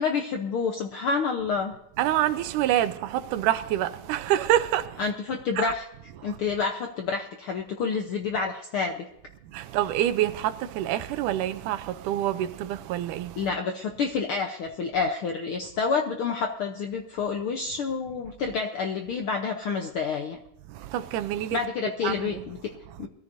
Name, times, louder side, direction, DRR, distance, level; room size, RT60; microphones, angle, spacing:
voice 1, 0.0-1.7 5.0-5.8 6.2-9.1 13.4-20.4 21.5-22.7 23.0-23.1, left 5 dB, 75° left, 1.2 m, -28 dB
voice 2, 2.0-5.1 5.6-5.7 6.2-6.4 9.5-13.5 20.7-21.6 22.0-22.4 22.9-23.0, right 12 dB, 85° right, 2.2 m, -27 dB
21.5 x 14.0 x 2.7 m
omnidirectional pair, 3.6 m